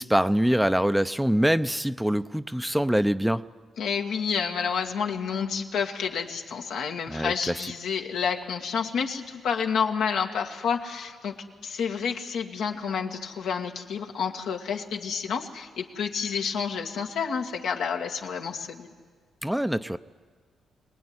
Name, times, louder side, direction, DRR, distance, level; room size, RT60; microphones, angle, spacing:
voice 1, 0.0-3.4 7.1-7.3 19.4-20.0, equal, 5° right, 11 dB, 0.7 m, -24 dB
voice 2, 3.8-11.4 11.6-18.9, left 6 dB, 85° left, 2 dB, 2.0 m, -29 dB
24.0 x 19.5 x 9.7 m, 1.6 s
cardioid pair, 75°, 0 cm